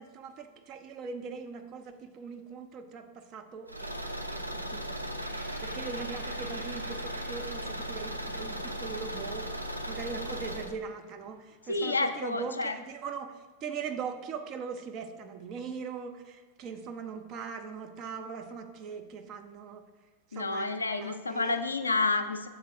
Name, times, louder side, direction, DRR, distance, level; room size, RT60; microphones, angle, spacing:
voice 1, 0.0-4.0 4.3-5.0 5.6-19.8 20.3-21.6, right 5 dB, 35° right, 6 dB, 0.5 m, -40 dB
Car / Engine, 3.7-10.7, equal, 85° right, 0.4 m, -37 dB
sound 1, 5.2-12.7, right 2 dB, 70° right, 0.8 m, -51 dB
voice 2, 11.7-12.8 20.3-22.5, left 3 dB, 80° left, 8 dB, 0.4 m, -29 dB
6.7 x 3.7 x 4.6 m, 1.4 s
figure-of-eight pair, 90°, 0 cm